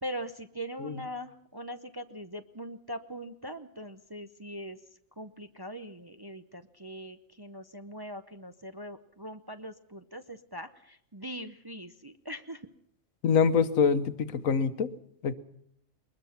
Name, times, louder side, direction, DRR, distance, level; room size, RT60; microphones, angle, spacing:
voice 1, 0.0-4.8 5.2-12.6, equal, 25° right, 8 dB, 0.6 m, -41 dB
voice 2, 13.2-14.9 15.2-15.3, left 6 dB, 75° left, 12 dB, 1.4 m, -25 dB
21.5 x 20.5 x 5.8 m, 0.73 s
omnidirectional pair, 1.4 m